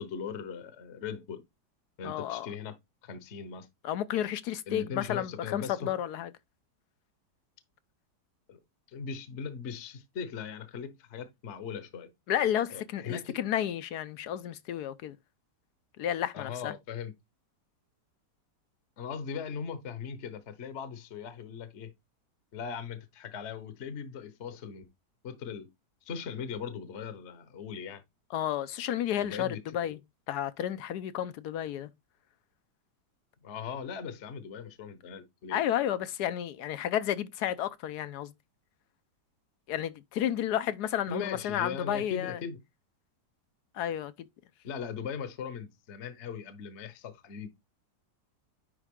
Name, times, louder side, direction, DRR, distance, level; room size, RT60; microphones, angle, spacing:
voice 1, 0.0-1.4 2.0-2.7 3.0-3.7 4.7-5.9 8.5-8.6 8.9-12.1 12.7-13.4 16.3-17.1 19.0-21.9 22.5-24.9 25.2-25.7 26.0-28.0 29.2-29.9 33.4-35.6 41.1-42.6 44.6-47.5, left 6 dB, 45° left, 1.1 m, -39 dB
voice 2, 2.0-2.5 3.8-6.3 12.3-15.2 16.0-16.7 28.3-30.0 30.3-31.9 35.5-38.3 39.7-42.4 43.7-44.3, left 11 dB, 70° left, 1.2 m, -32 dB
10.0 x 3.6 x 3.6 m
omnidirectional pair, 1.9 m